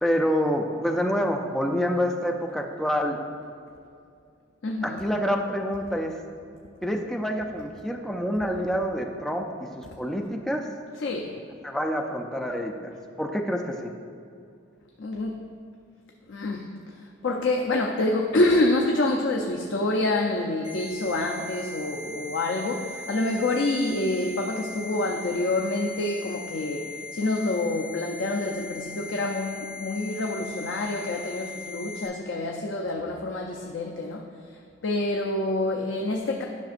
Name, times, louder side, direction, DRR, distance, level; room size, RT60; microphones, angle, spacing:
voice 1, 0.0-3.2 4.8-6.2 6.8-10.7 11.6-12.9 13.2-13.9, equal, ahead, 2 dB, 0.4 m, -27 dB
voice 2, 4.6-5.1 10.9-11.4 15.0-15.4 16.3-36.4, left 2 dB, 65° left, 1 dB, 0.5 m, -27 dB
sound 1, 20.6-32.1, left 3 dB, 15° right, 1.2 m, -39 dB
10.5 x 5.9 x 2.5 m, 2.4 s
head